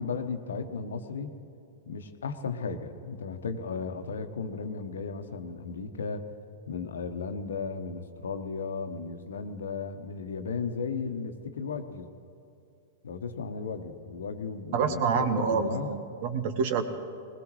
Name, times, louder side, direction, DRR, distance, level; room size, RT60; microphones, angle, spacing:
voice 1, 0.0-1.3 1.9-6.3 6.7-12.1 13.0-15.9, left 5 dB, 70° left, 8 dB, 1.1 m, -35 dB
voice 2, 14.7-16.8, right 6 dB, 50° right, 9 dB, 1.4 m, -27 dB
20.5 x 20.0 x 3.2 m, 2.8 s
figure-of-eight pair, 100°, 0 cm